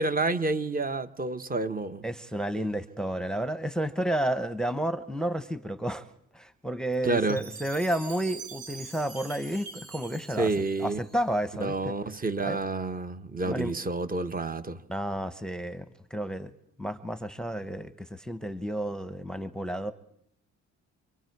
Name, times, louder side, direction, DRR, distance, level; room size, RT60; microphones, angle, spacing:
voice 1, 0.0-2.0 7.0-7.4 10.4-11.0 11.6-14.8, right 3 dB, 30° right, 1.2 m, -29 dB
voice 2, 2.0-6.1 6.3-10.5 10.8-12.0 12.4-12.6 13.4-13.7 14.9-16.5 16.8-19.9, right 1 dB, ahead, 1.0 m, -31 dB
Chime, 7.3-11.5, right 5 dB, 55° right, 4.3 m, -45 dB
27.0 x 23.0 x 4.7 m
cardioid pair, 90°, 30 cm